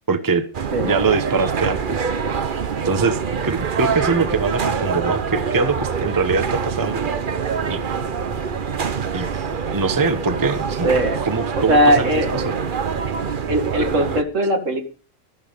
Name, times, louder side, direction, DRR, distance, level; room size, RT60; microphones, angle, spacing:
voice 1, 0.1-0.5 0.8-2.0 2.8-7.1 7.7-7.8 9.1-9.3 9.7-10.9 11.2-12.5, right 4 dB, 15° right, 9 dB, 0.9 m, -22 dB
sound 1, 0.5-14.2, right 6 dB, 45° right, 1.0 m, -25 dB
voice 2, 0.7-1.0 10.8-11.2 11.5-12.3 13.5-14.8, equal, 70° right, 5 dB, 2.3 m, -19 dB
13.5 x 11.0 x 5.2 m, 0.40 s
omnidirectional pair, 1.4 m